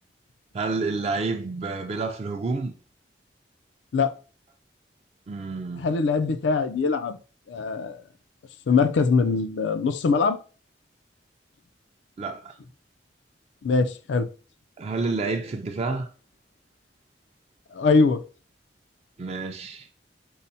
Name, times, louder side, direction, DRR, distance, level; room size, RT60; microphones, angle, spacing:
voice 1, 0.5-2.7 5.3-5.9 12.2-12.6 14.8-16.1 19.2-19.9, right 3 dB, 35° right, 0.4 m, -29 dB
voice 2, 5.8-7.2 7.5-8.0 8.7-10.4 13.6-14.3 17.7-18.2, left 4 dB, 85° left, 0.4 m, -22 dB
5.5 x 2.0 x 2.6 m
head